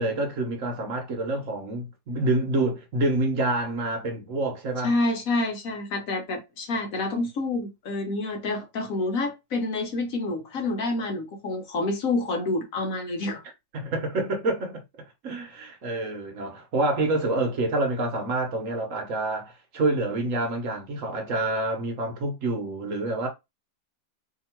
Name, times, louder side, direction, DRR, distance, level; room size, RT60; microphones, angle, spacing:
voice 1, 0.0-4.9 13.7-14.8 15.2-23.3, right 2 dB, 55° right, 1.1 m, -27 dB
voice 2, 4.8-13.4, left 2 dB, 60° left, 1.2 m, -28 dB
2.9 x 2.9 x 4.3 m
omnidirectional pair, 1.7 m